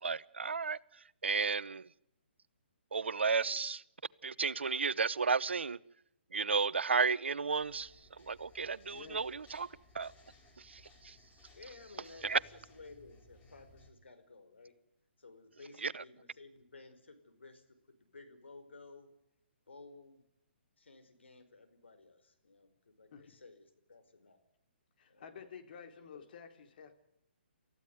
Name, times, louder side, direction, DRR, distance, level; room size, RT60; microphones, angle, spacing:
voice 1, 0.0-0.8 1.2-1.9 2.9-3.8 4.2-5.8 6.3-7.9 8.2-9.7 9.9-10.1 10.6-11.2 12.2-12.4 15.8-16.0, right 5 dB, 80° right, 18 dB, 0.9 m, -33 dB
voice 2, 3.2-3.6 11.5-14.8 15.2-19.1 19.7-20.3 20.8-24.4 25.1-25.3 26.1-26.2, left 3 dB, 85° left, 8 dB, 5.0 m, -55 dB
sound 1, 7.6-13.9, left 2 dB, 20° left, 5.5 m, -62 dB
voice 3, 8.9-9.2 23.1-23.4 25.0-26.9, left 6 dB, 50° left, 6 dB, 3.7 m, -51 dB
28.5 x 15.0 x 9.5 m, 0.83 s
hypercardioid pair, 140°, 6 cm